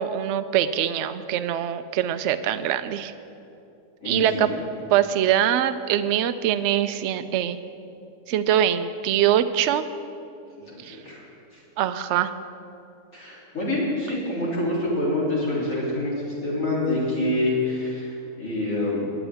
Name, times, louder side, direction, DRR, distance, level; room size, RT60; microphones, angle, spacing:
voice 1, 0.0-3.1 4.0-4.5 4.9-7.6 8.3-9.8 10.8-11.0 11.8-12.3, right 10 dB, 75° right, 11 dB, 0.6 m, -23 dB
voice 2, 4.0-4.6 10.7-11.2 11.5-11.6 13.1-18.1 18.4-19.0, left 1 dB, 55° left, -7 dB, 3.7 m, -26 dB
19.0 x 9.8 x 3.5 m, 2.7 s
omnidirectional pair, 1.7 m